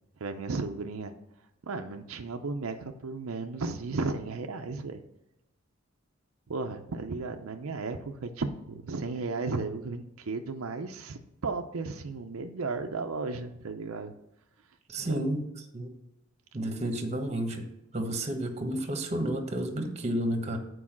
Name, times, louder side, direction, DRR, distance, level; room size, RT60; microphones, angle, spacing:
voice 1, 0.2-1.1 1.6-5.0 6.5-14.1 15.0-15.4, right 3 dB, 80° right, 5 dB, 0.6 m, -34 dB
voice 2, 14.9-15.4 15.7-15.9 16.5-17.7 17.9-20.6, right 1 dB, 30° right, 5 dB, 1.2 m, -31 dB
8.5 x 4.7 x 6.0 m, 0.88 s
head